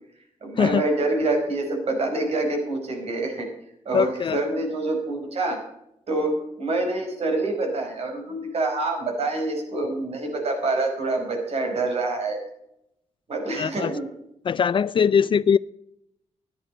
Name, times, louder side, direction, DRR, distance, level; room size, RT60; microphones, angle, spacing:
voice 1, 0.4-3.5 3.8-5.6 6.1-12.4 13.3-14.1, right 2 dB, 60° right, 5.1 m, -26 dB
voice 2, 3.9-4.4 13.6-14.0 14.4-15.6, left 7 dB, 45° left, 0.4 m, -21 dB
14.0 x 10.5 x 5.5 m
wide cardioid pair, 120°, 12 cm